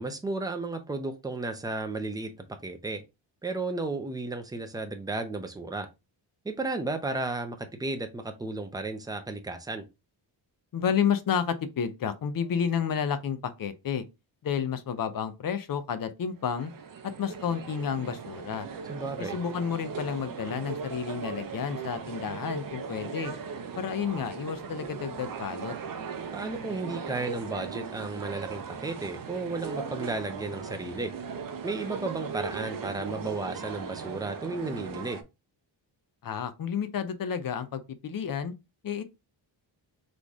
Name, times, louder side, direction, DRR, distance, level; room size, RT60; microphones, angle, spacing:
voice 1, 0.0-2.3 2.6-3.0 3.4-5.9 6.4-9.9 18.9-19.4 26.3-31.1 31.6-35.2, right 3 dB, 10° right, 0.6 m, -33 dB
voice 2, 10.7-14.0 14.4-16.7 17.2-18.7 19.2-23.3 23.8-25.7 36.2-38.5 38.8-39.0, left 7 dB, 50° left, 0.7 m, -31 dB
sound 1, 16.4-35.2, right 6 dB, 45° right, 0.7 m, -38 dB
4.1 x 3.2 x 3.5 m
wide cardioid pair, 145°, 45 cm